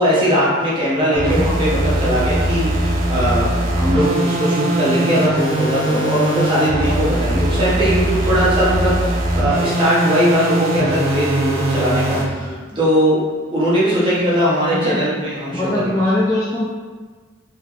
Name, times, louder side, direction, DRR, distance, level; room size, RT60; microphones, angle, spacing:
voice 1, 0.0-13.2 13.5-15.9, equal, 25° right, -9 dB, 0.9 m, -19 dB
voice 2, 1.1-1.5 12.3-12.8 14.7-15.1 15.5-16.6, left 1 dB, 15° left, -7 dB, 0.3 m, -22 dB
sound 1, 1.1-12.3, right 1 dB, 80° right, 0.6 m, -20 dB
3.2 x 2.8 x 2.4 m, 1.4 s
head